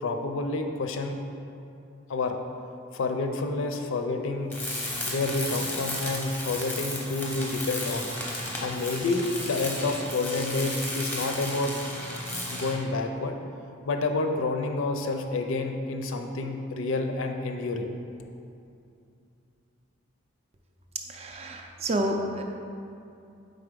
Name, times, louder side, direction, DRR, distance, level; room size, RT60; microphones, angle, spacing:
voice 1, 0.0-1.2 2.1-2.4 2.9-4.5 5.1-8.1 8.6-11.7 12.5-13.3 13.9-18.0, left 3 dB, 65° left, 5 dB, 0.4 m, -29 dB
Tools, 4.5-12.9, left 1 dB, 10° left, 0.6 m, -34 dB
voice 2, 21.1-22.4, right 1 dB, 30° right, 2 dB, 0.4 m, -29 dB
4.7 x 3.9 x 5.0 m, 2.6 s
head